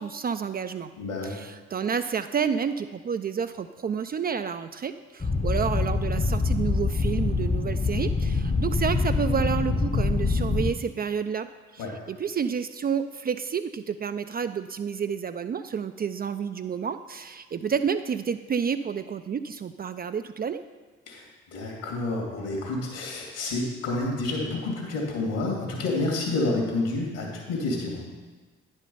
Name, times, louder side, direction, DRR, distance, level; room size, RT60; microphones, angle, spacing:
voice 1, 0.0-0.9 1.2-11.5 11.7-20.6, right 7 dB, 30° right, 10 dB, 0.4 m, -30 dB
voice 2, 1.0-1.3 11.8-12.0 21.1-21.3 21.5-28.1, left 2 dB, 70° left, 0 dB, 2.5 m, -29 dB
sound 1, 5.2-10.7, left 3 dB, 20° left, 0.8 m, -25 dB
9.9 x 5.3 x 5.5 m, 1.4 s
hypercardioid pair, 50°, 33 cm